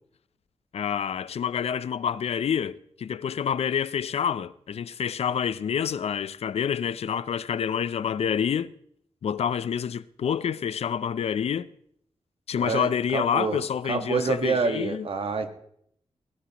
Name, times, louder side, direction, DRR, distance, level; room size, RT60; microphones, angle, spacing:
voice 1, 0.7-8.7 9.2-11.7 12.5-15.1, left 8 dB, 75° left, 0.5 m, -28 dB
voice 2, 12.6-13.6 13.9-15.5, right 4 dB, 60° right, 1.5 m, -27 dB
18.0 x 16.0 x 3.0 m
wide cardioid pair, 155°, 11 cm